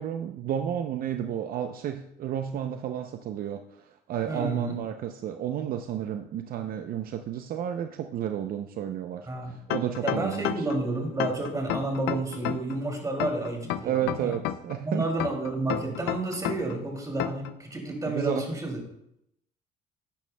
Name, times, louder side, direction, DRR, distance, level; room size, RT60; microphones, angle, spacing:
voice 1, 0.0-10.7 13.8-15.1 18.1-18.4, right 10 dB, 60° right, 7 dB, 0.5 m, -32 dB
voice 2, 4.3-4.8 9.3-9.6 10.0-14.4 14.8-18.8, right 2 dB, 20° right, 1 dB, 2.5 m, -30 dB
sound 1, 9.7-10.8 11.2-12.8 13.2-14.8 15.2-16.8 17.2-17.5, left 12 dB, 85° left, 0.5 m, -30 dB
11.0 x 9.0 x 2.2 m, 0.79 s
cardioid pair, 110°, 17 cm